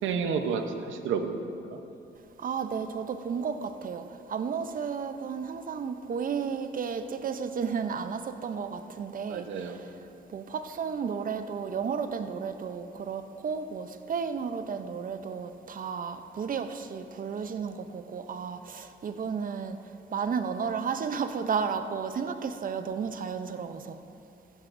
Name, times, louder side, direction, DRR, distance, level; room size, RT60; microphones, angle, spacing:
voice 1, 0.0-1.8 9.3-9.8, right 5 dB, 80° right, 6 dB, 0.9 m, -31 dB
voice 2, 2.4-10.0 10.3-19.8 20.1-24.0, right 6 dB, 45° right, 9 dB, 0.6 m, -33 dB
14.5 x 11.0 x 2.6 m, 2.7 s
cardioid pair, 90°, 20 cm